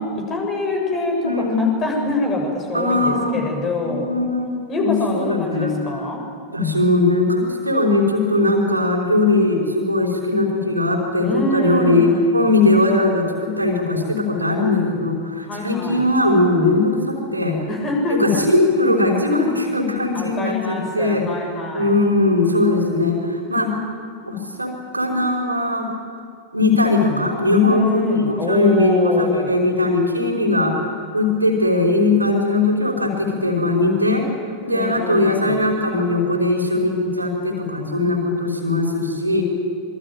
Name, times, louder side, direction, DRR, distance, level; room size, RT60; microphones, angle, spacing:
voice 1, 0.3-1.3 1.6-4.1 4.7-6.2 11.2-12.5 15.4-16.0 17.7-18.4 20.1-21.9 27.7-29.6 34.7-35.6, left 2 dB, 25° left, 2 dB, 7.5 m, -25 dB
voice 2, 1.2-1.8 2.7-3.4 3.8-5.7 6.5-17.6 18.1-21.3 21.7-23.8 24.2-25.9 26.5-34.3 34.6-39.4, left 2 dB, 85° right, 2 dB, 5.1 m, -19 dB
26.5 x 23.5 x 9.2 m, 2.3 s
figure-of-eight pair, 90°, 0 cm